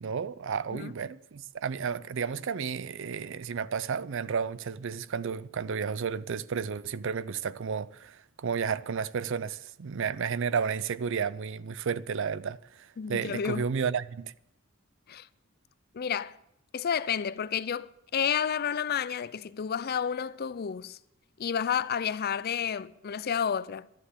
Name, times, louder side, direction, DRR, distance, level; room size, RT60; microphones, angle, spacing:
voice 1, 0.0-14.3, right 6 dB, 65° right, 0.5 m, -32 dB
voice 2, 13.0-13.7 15.1-15.3 15.9-16.4 16.7-21.0 21.4-23.9, left 7 dB, 50° left, 0.5 m, -30 dB
12.0 x 10.0 x 8.2 m
head